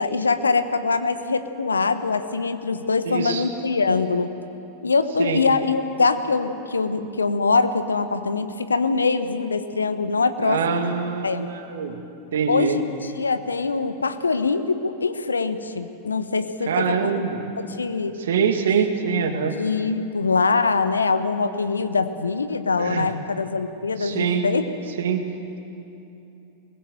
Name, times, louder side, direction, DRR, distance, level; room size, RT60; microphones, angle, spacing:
voice 1, 0.0-4.3 4.8-10.9 11.2-11.5 12.5-17.2 17.6-18.2 18.8-18.9 19.6-24.6, left 4 dB, 75° left, 10 dB, 1.2 m, -23 dB
voice 2, 3.1-3.4 5.2-5.4 10.4-12.0 12.3-12.8 16.7-17.4 18.2-19.6 22.8-23.1 24.0-24.4 25.0-25.2, right 6 dB, 60° right, 6 dB, 2.2 m, -24 dB
22.5 x 20.0 x 7.8 m, 2.9 s
figure-of-eight pair, 90°, 0 cm